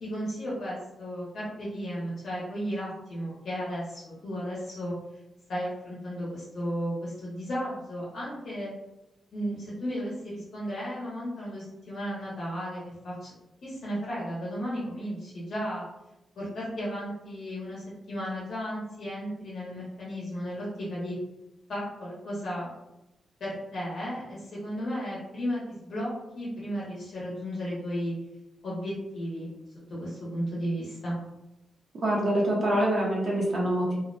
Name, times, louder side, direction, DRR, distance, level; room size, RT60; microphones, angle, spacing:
voice 1, 0.0-4.9 5.5-8.7 9.3-13.3 13.6-15.8 16.4-21.2 21.7-22.7 23.4-28.1 28.6-29.5 29.9-31.2, equal, 75° left, -7 dB, 0.8 m, -34 dB
voice 2, 32.0-33.9, right 1 dB, 50° right, -4 dB, 0.9 m, -25 dB
2.4 x 2.0 x 2.5 m, 0.94 s
wide cardioid pair, 120°, 0 cm